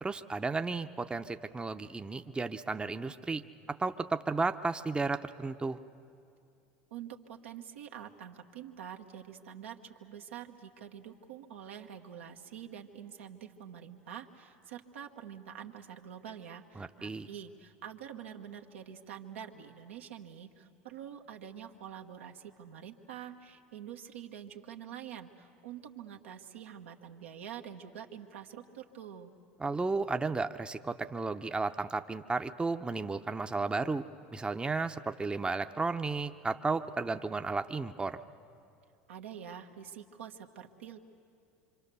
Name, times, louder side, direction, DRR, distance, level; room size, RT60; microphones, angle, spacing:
voice 1, 0.0-3.4 3.7-5.8 16.8-17.3 29.6-34.0 34.3-38.2, right 3 dB, 15° right, 8 dB, 0.7 m, -33 dB
voice 2, 6.9-29.3 39.1-41.0, right 9 dB, 90° right, 3 dB, 1.3 m, -46 dB
26.0 x 25.5 x 6.9 m, 2.6 s
hypercardioid pair, 90°, 7 cm